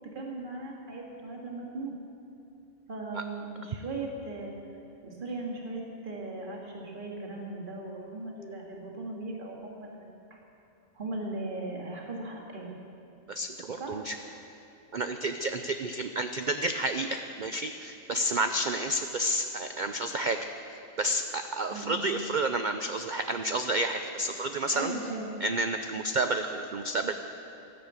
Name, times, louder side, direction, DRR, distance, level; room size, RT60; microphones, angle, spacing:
voice 1, 0.1-1.9 2.9-4.5 5.0-10.4 10.9-12.7 13.8-14.0 21.7-22.1 24.7-25.4, right 2 dB, 35° right, -1 dB, 2.0 m, -38 dB
voice 2, 13.3-14.2 14.9-20.4 21.0-24.9 25.4-27.1, right 1 dB, 70° right, 7 dB, 0.4 m, -30 dB
12.5 x 11.5 x 8.2 m, 2.8 s
omnidirectional pair, 1.5 m